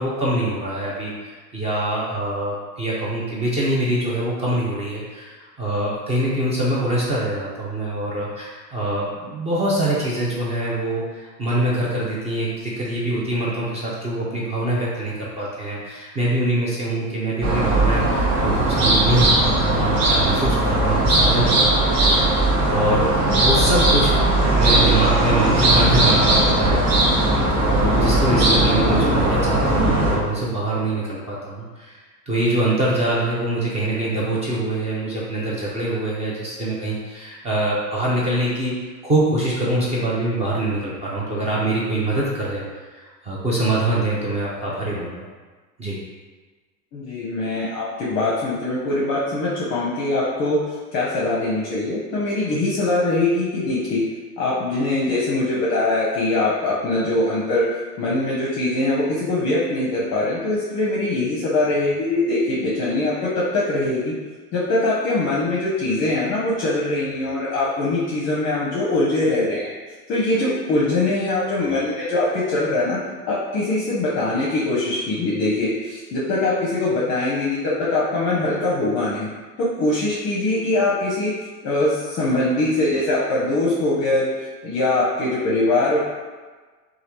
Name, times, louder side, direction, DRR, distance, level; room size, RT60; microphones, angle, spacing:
voice 1, 0.0-23.1 23.4-24.1 24.6-27.2 27.6-38.7 39.0-45.3 45.8-46.0, right 1 dB, 15° right, -6 dB, 0.4 m, -24 dB
sound 1, 17.4-30.2, right 1 dB, 50° right, 1.0 m, -18 dB
voice 2, 46.9-54.0 54.4-57.7 58.0-64.1 64.5-69.7 70.1-73.0 73.3-79.3 79.6-81.3 81.6-84.3 84.6-86.0, left 2 dB, 35° left, -5 dB, 0.6 m, -22 dB
3.1 x 2.4 x 2.9 m, 1.4 s
hypercardioid pair, 85°, 48 cm